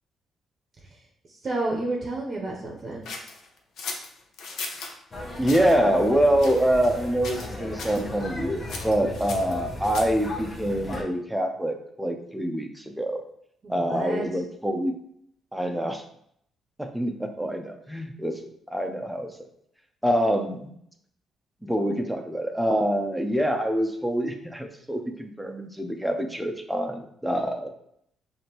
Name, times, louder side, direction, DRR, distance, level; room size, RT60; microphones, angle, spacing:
voice 1, 1.4-3.1 13.6-14.2, right 2 dB, 45° right, -1 dB, 0.7 m, -30 dB
sound 1, 3.0-4.9 5.4-5.8 6.4-7.0 7.2-7.5 7.8-8.0 8.7-10.3, left 4 dB, 75° left, 0.7 m, -37 dB
sound 2, 5.1-11.0, left 1 dB, 30° left, 1.0 m, -36 dB
voice 2, 5.4-13.2 13.7-14.9 15.5-16.0 16.8-18.4 18.7-19.3 20.0-20.7 21.6-27.7, equal, 5° right, 4 dB, 0.6 m, -25 dB
4.9 x 2.6 x 2.9 m, 0.70 s
cardioid pair, 90°, 0 cm